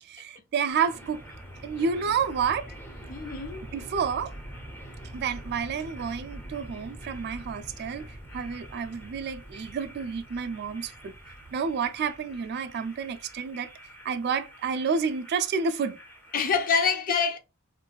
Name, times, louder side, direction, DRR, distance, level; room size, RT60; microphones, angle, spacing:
voice 1, 0.0-1.2 1.6-2.7 3.7-4.3 5.1-11.1 11.5-13.7 14.0-16.0, right 6 dB, 45° right, 0.3 m, -30 dB
sound 1, 0.7-16.7, right 1 dB, 10° left, 0.9 m, -45 dB
voice 2, 3.1-3.6 16.3-17.4, left 6 dB, 40° left, 0.5 m, -26 dB
3.8 x 2.5 x 2.3 m
head